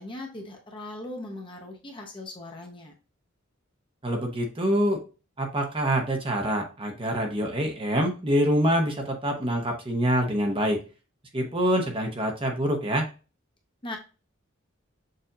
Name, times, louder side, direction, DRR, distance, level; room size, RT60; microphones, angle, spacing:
voice 1, 0.0-2.9 13.8-14.0, left 2 dB, 25° left, 1 dB, 0.9 m, -39 dB
voice 2, 4.0-5.0 5.4-10.8 11.3-13.1, equal, 25° right, 2 dB, 0.8 m, -25 dB
6.6 x 2.6 x 2.7 m, 0.33 s
head